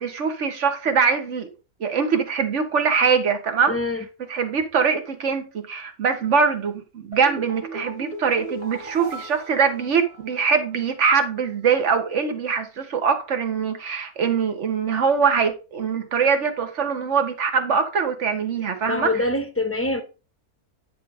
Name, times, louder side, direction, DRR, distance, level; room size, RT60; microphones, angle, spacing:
voice 1, 0.0-1.5 1.8-3.7 4.3-19.1, right 6 dB, 50° right, 1.5 m, -22 dB
voice 2, 3.7-4.0 18.9-20.0, left 2 dB, 10° left, 0.7 m, -24 dB
sound 1, 7.1-10.5 10.8-10.9, right 2 dB, 25° right, 1.5 m, -37 dB
10.0 x 3.5 x 4.8 m
omnidirectional pair, 1.6 m